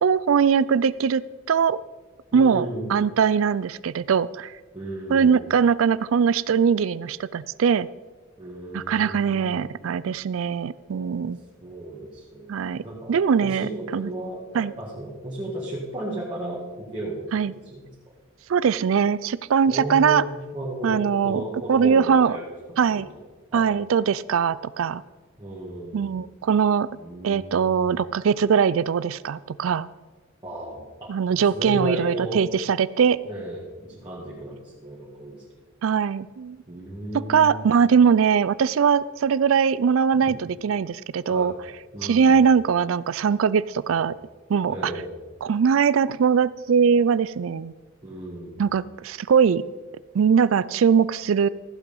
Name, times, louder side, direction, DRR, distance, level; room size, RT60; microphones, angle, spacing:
voice 1, 0.0-1.8 2.3-4.5 5.1-7.9 8.7-11.4 12.5-14.1 14.5-14.7 17.3-17.5 18.5-20.2 20.8-21.4 21.7-22.4 22.8-23.1 23.5-25.0 25.9-26.9 27.2-29.9 31.1-33.2 35.8-36.6 37.1-41.5 42.0-44.1 44.5-44.9 45.4-47.7 48.6-49.6 50.1-51.5, right 6 dB, 80° right, 19 dB, 0.4 m, -21 dB
voice 2, 2.3-3.0 4.7-5.6 8.4-9.6 10.9-11.3 11.6-17.2 17.7-17.9 19.7-22.4 22.9-23.0 23.5-23.7 25.4-26.1 26.9-27.8 30.4-32.4 33.2-35.4 36.7-37.7 41.3-41.5 41.9-42.4 44.0-44.1 44.7-45.1 48.0-48.6, right 1 dB, 25° right, -6 dB, 2.2 m, -34 dB
14.5 x 7.9 x 5.4 m, 1.3 s
head